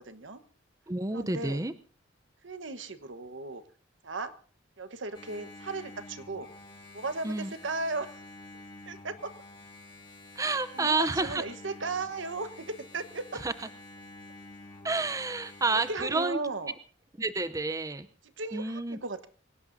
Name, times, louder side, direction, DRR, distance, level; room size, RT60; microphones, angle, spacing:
voice 1, 0.1-0.4 1.1-1.6 2.4-3.6 4.0-4.3 4.8-6.5 6.9-8.2 8.9-9.3 10.7-13.4 15.7-16.7 18.4-19.3, right 3 dB, 75° right, 10 dB, 1.3 m, -36 dB
voice 2, 0.9-1.7 7.2-7.5 10.3-11.4 13.4-13.5 14.8-16.4 17.2-18.1 18.5-19.0, right 3 dB, 20° right, 11 dB, 0.7 m, -29 dB
Engine, 5.1-15.9, left 2 dB, 25° left, 5.3 m, -49 dB
25.0 x 17.5 x 2.7 m, 0.42 s
head